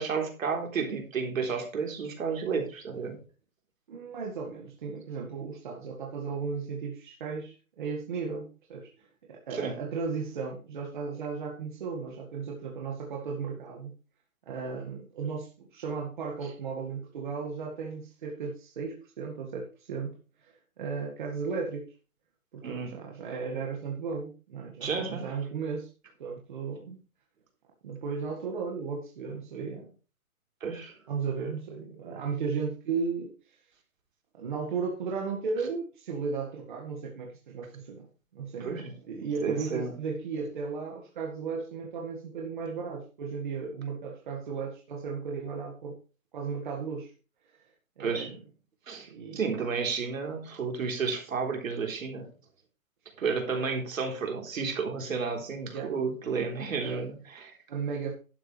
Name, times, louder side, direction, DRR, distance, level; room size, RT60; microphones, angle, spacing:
voice 1, 0.0-3.2 9.5-9.7 22.6-22.9 24.8-25.2 30.6-31.0 38.6-38.9 39.2-39.9 48.0-48.3 48.9-52.3 53.2-57.5, right 5 dB, 70° right, 2 dB, 3.9 m, -32 dB
voice 2, 3.9-13.9 14.5-21.9 22.5-25.9 26.2-27.0 27.8-29.9 31.1-33.6 34.3-38.1 38.3-46.0 46.3-47.1 48.0-48.4 49.1-49.4 53.5-53.7 55.7-55.9 56.8-57.1 57.7-58.1, right 5 dB, 35° right, 0 dB, 1.9 m, -35 dB
11.5 x 9.3 x 3.3 m, 0.35 s
hypercardioid pair, 180°, 42 cm